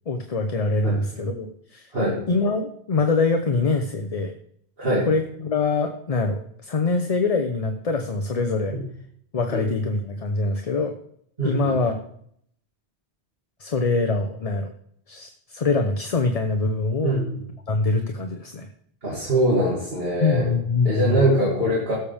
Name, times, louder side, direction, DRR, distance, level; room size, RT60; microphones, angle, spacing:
voice 1, 0.1-1.9 2.3-4.4 5.1-8.8 9.3-10.9 11.4-12.0 13.6-14.7 15.1-17.1 17.7-18.7 20.2-21.2, left 3 dB, 40° left, 5 dB, 0.8 m, -24 dB
voice 2, 4.8-5.1 8.7-8.8 9.5-9.6 11.4-11.8 17.0-17.4 19.0-20.5 20.8-22.0, right 1 dB, 60° right, -6 dB, 2.8 m, -23 dB
17.0 x 7.1 x 3.5 m, 0.68 s
omnidirectional pair, 1.1 m